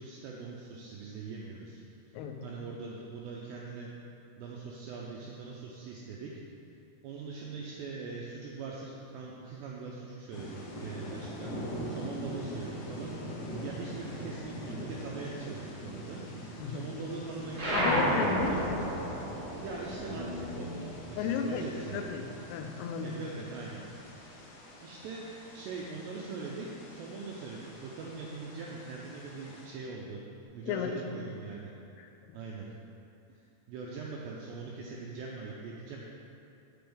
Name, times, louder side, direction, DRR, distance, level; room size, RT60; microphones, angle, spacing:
voice 1, 0.0-1.8 2.1-3.9 4.4-6.3 7.0-11.6 11.9-16.2 16.5-18.6 19.3-22.1 23.0-23.9 24.5-25.3 25.5-30.2 30.5-31.7 32.3-32.7 33.3-33.4 33.7-36.0, right 4 dB, 85° right, -3 dB, 2.4 m, -42 dB
sound 1, 10.3-29.7, equal, 70° left, 2.8 m, -43 dB
sound 2, 17.5-22.4 22.7-24.2, equal, 60° right, 0.9 m, -33 dB
voice 2, 17.7-18.5 21.2-23.2 30.6-31.0 32.0-32.4, left 6 dB, 90° left, 5 dB, 3.2 m, -34 dB
8.6 x 7.8 x 3.5 m, 2.5 s
omnidirectional pair, 5.7 m